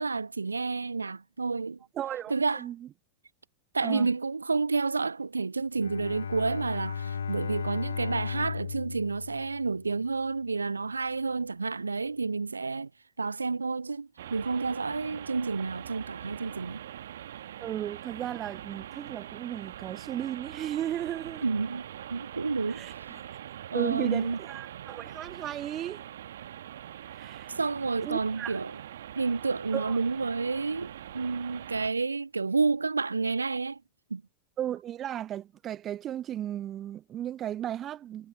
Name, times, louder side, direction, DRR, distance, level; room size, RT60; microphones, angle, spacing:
voice 1, 0.0-1.8 2.3-2.7 3.7-12.9 13.2-16.8 21.4-23.2 23.7-24.4 27.5-28.8 29.1-33.8 34.1-34.2, right 4 dB, 80° right, 0.6 m, -30 dB
voice 2, 2.0-2.3 2.6-2.7 3.8-4.1 17.6-21.4 22.8-22.9 23.7-26.0 27.1-27.5 28.0-28.5 29.7-30.0 34.6-38.3, right 11 dB, 30° right, 1.0 m, -35 dB
Bowed string instrument, 5.8-10.1, left 6 dB, 70° left, 0.5 m, -35 dB
sound 1, 14.2-31.9, right 11 dB, 60° right, 1.9 m, -43 dB
figure-of-eight pair, 90°, 0 cm